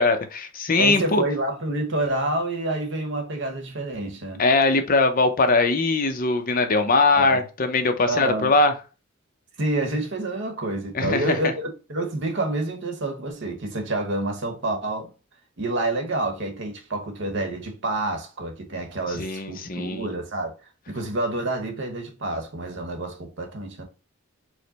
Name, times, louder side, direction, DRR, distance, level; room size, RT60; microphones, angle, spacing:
voice 1, 0.0-1.2 4.4-8.7 10.9-11.5 19.1-20.1, left 3 dB, 45° left, 0.6 m, -21 dB
voice 2, 0.8-4.4 7.1-7.4 8.1-8.5 9.6-15.1 15.6-20.5 20.9-23.8, right 2 dB, 60° right, 1.0 m, -28 dB
4.8 x 2.1 x 3.9 m
head